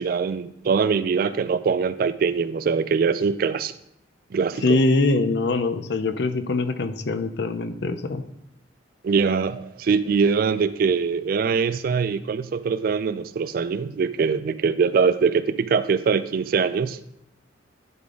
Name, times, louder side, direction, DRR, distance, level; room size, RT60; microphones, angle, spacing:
voice 1, 0.0-3.7 4.3-4.8 9.0-17.0, right 5 dB, 50° right, 14 dB, 0.3 m, -23 dB
voice 2, 4.6-8.2, left 3 dB, 60° left, 10 dB, 0.5 m, -23 dB
11.0 x 3.9 x 3.7 m, 0.78 s
head